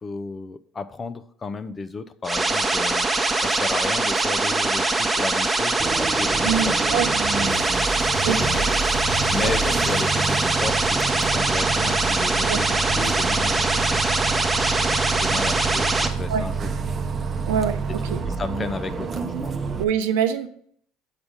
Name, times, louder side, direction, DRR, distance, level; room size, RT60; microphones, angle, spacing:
voice 1, 0.0-3.1 3.4-7.7 8.3-8.8 9.3-14.5 14.7-16.7 17.9-19.6, left 4 dB, 30° left, 12 dB, 0.6 m, -33 dB
sound 1, 2.2-16.1, right 2 dB, 15° right, 1.0 m, -22 dB
Bus, 5.8-19.8, right 4 dB, 35° right, 0.8 m, -28 dB
voice 2, 6.4-7.1 8.2-8.4 9.4-9.5 12.5-12.6 16.3-16.4 17.5-17.8 18.1-18.2 19.8-20.5, right 8 dB, 80° right, 8 dB, 0.6 m, -24 dB
7.1 x 5.0 x 5.2 m, 0.62 s
hypercardioid pair, 70°, 0 cm